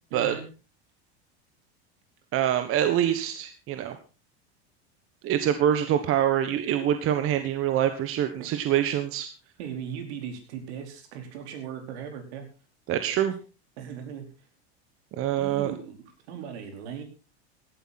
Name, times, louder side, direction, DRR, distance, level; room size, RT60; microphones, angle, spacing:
voice 1, 0.1-0.4 8.4-8.5 9.6-12.5 13.8-14.3 15.4-17.0, right 8 dB, 75° right, 5 dB, 4.5 m, -38 dB
voice 2, 2.3-4.0 5.2-9.3 12.9-13.3 15.2-15.7, right 10 dB, 40° right, 9 dB, 1.4 m, -25 dB
16.5 x 12.0 x 4.2 m, 0.32 s
supercardioid pair, 125°, 34 cm